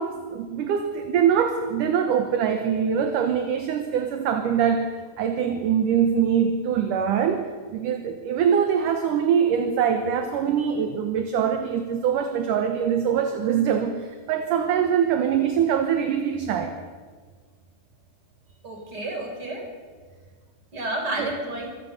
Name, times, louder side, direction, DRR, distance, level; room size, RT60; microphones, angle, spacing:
voice 1, 0.0-4.9 5.2-16.8 21.2-21.4, right 8 dB, 65° right, 6 dB, 2.4 m, -23 dB
voice 2, 18.6-19.7 20.7-21.7, right 2 dB, 25° right, 2 dB, 4.4 m, -30 dB
25.5 x 17.0 x 6.6 m, 1.6 s
omnidirectional pair, 4.6 m